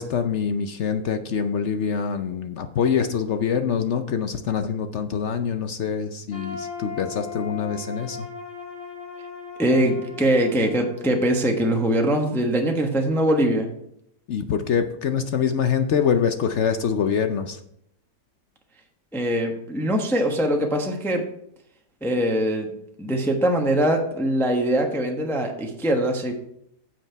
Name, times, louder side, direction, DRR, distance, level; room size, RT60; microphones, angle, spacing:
voice 1, 0.0-8.3 14.3-17.6, left 7 dB, 65° left, 8 dB, 0.7 m, -25 dB
sound 1, 6.3-12.2, left 5 dB, 45° left, 2.9 m, -38 dB
voice 2, 9.6-13.7 19.1-21.2 22.0-22.7 23.0-26.3, right 1 dB, ahead, 2 dB, 0.9 m, -22 dB
8.8 x 7.8 x 4.5 m, 0.74 s
omnidirectional pair, 1.8 m